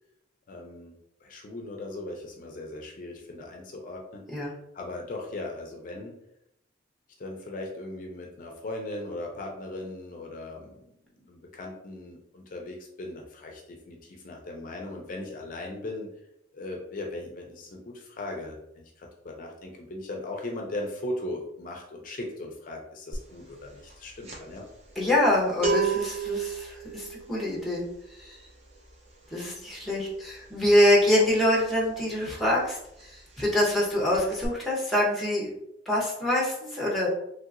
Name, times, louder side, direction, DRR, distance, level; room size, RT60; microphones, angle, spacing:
voice 1, 0.5-4.5 4.7-6.1 7.2-10.7 11.2-16.1 16.5-24.6, left 2 dB, 45° left, 1 dB, 0.4 m, -38 dB
sound 1, 23.1-23.4 23.6-32.2 32.5-32.7 33.0-33.8 34.1-34.5, right 5 dB, 35° right, 0.7 m, -33 dB
voice 2, 25.0-27.8 28.2-28.4 29.3-35.5 35.9-37.1, left 1 dB, ahead, -4 dB, 0.7 m, -25 dB
3.2 x 2.8 x 2.4 m, 0.80 s
head